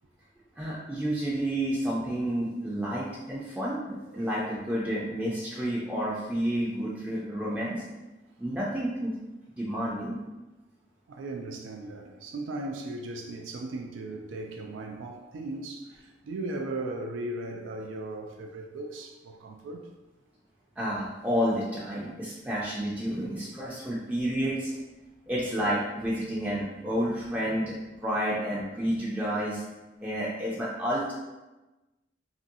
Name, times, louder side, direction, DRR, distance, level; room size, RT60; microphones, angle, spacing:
voice 1, 0.6-7.8 8.4-9.1 9.6-10.2 20.8-24.8 25.3-27.8 28.0-29.6 30.0-31.1, equal, 10° right, -7 dB, 0.4 m, -30 dB
voice 2, 11.1-19.9, right 2 dB, 85° right, 2 dB, 0.3 m, -37 dB
3.0 x 2.6 x 2.6 m, 1.1 s
head